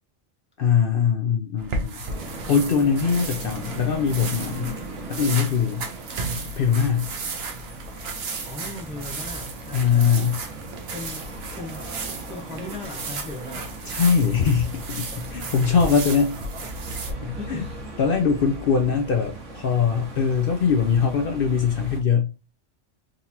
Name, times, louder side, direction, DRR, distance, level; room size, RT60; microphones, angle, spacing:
voice 1, 0.6-2.0 2.5-4.7 5.1-5.8 6.6-7.1 9.7-10.4 13.8-16.4 17.2-17.6 18.0-22.3, left 6 dB, 60° left, 0.6 m, -22 dB
sound 1, 1.6-17.1, right 4 dB, 60° right, 0.9 m, -34 dB
sound 2, 2.0-22.0, right 1 dB, 85° right, 1.3 m, -38 dB
voice 2, 8.4-10.2 10.9-11.3 11.6-13.7 17.4-17.8, left 3 dB, 5° right, 0.6 m, -38 dB
3.8 x 2.9 x 2.7 m
omnidirectional pair, 1.2 m